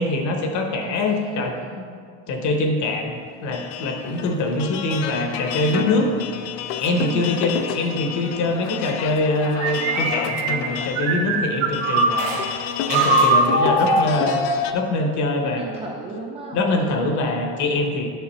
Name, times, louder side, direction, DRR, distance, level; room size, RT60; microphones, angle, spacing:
voice 1, 0.0-1.6 2.3-3.1 3.4-6.1 6.8-12.5 12.9-15.6 16.5-18.1, left 2 dB, 40° left, 4 dB, 0.9 m, -23 dB
voice 2, 0.8-2.0 7.0-7.5 15.4-17.3, right 3 dB, 15° right, -3 dB, 0.6 m, -35 dB
sound 1, 3.5-14.7, left 8 dB, 75° left, 0.7 m, -31 dB
sound 2, 9.5-12.4 12.9-14.7, right 2 dB, 70° right, 1.7 m, -21 dB
9.1 x 5.8 x 4.3 m, 2.2 s
cardioid pair, 155°, 47 cm